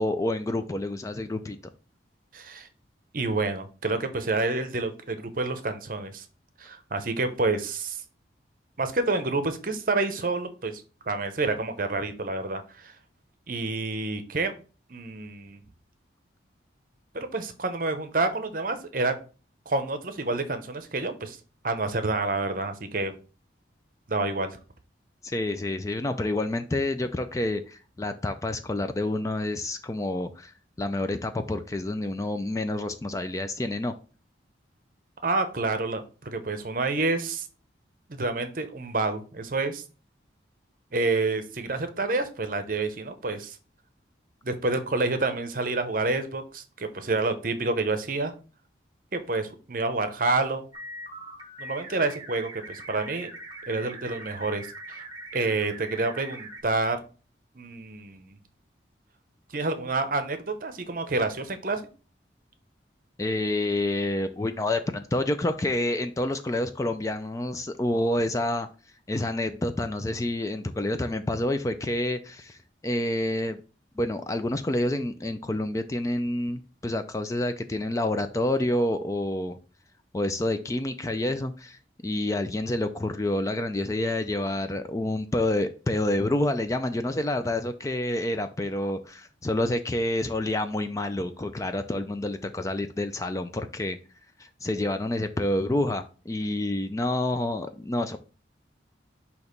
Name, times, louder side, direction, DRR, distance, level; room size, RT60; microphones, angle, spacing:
voice 1, 0.0-1.6 25.2-33.9 63.2-68.7 69.1-72.6 72.8-73.6 74.0-79.6 80.1-94.0 94.4-98.2, left 1 dB, 15° left, 9 dB, 0.3 m, -28 dB
voice 2, 2.3-2.7 3.1-6.2 6.6-8.0 8.8-12.9 13.5-14.5 14.9-15.6 17.1-19.1 19.7-21.4 21.6-23.1 24.1-24.6 35.2-37.4 38.1-39.8 40.9-43.6 44.4-48.3 49.1-50.6 51.6-53.3 53.7-55.0 55.3-57.0 57.6-58.4 59.5-61.8, right 3 dB, 45° right, 9 dB, 0.8 m, -28 dB
sound 1, 50.7-56.6, right 1 dB, 25° right, 1.0 m, -42 dB
6.2 x 2.9 x 5.2 m, 0.36 s
head